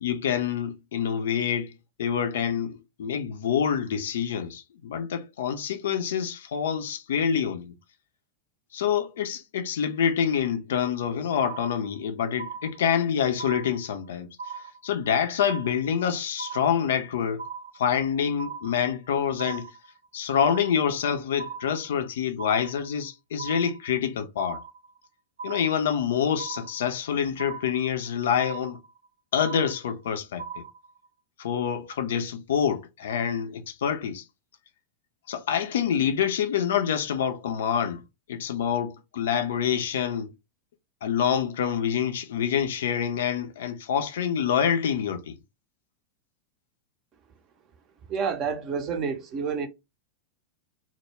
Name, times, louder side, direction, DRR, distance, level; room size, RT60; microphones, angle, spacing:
voice 1, 0.0-1.7 2.0-7.7 8.7-14.3 14.8-17.4 17.8-19.7 20.1-24.6 25.4-28.8 29.3-30.4 31.4-34.2 35.3-38.0 38.3-40.3 41.0-45.3, left 8 dB, 60° left, 0.4 m, -26 dB
sound 1, 11.4-12.1 12.4-13.1 13.4-14.1 14.4-15.1 15.4-16.1 16.4-17.1 17.4-18.1 18.4-19.1 19.4-20.1 20.4-21.1 21.4-22.1 22.4-23.1 23.4-24.1 24.4-25.1 25.4-26.1 26.4-27.1 27.4-28.1 28.4-29.1 29.4-30.1 30.4-31.1, right 5 dB, 70° right, 0.7 m, -39 dB
voice 2, 48.1-49.7, right 6 dB, 35° right, 0.5 m, -29 dB
2.1 x 2.0 x 3.2 m
figure-of-eight pair, 90°, 0 cm